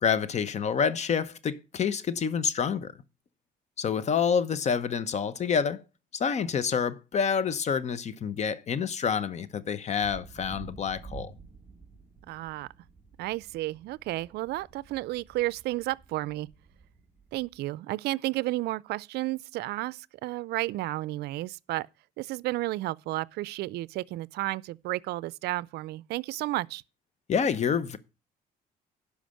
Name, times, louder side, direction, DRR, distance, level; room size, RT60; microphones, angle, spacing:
voice 1, 0.0-2.9 3.8-5.8 6.1-11.3 27.3-28.0, left 6 dB, 40° left, 0.9 m, -28 dB
sound 1, 10.0-17.6, right 5 dB, 10° right, 2.3 m, -50 dB
voice 2, 12.3-12.7 13.2-16.5 17.3-21.9 22.2-26.8, right 18 dB, 75° right, 0.4 m, -32 dB
11.5 x 5.0 x 6.5 m
cardioid pair, 110°, 17 cm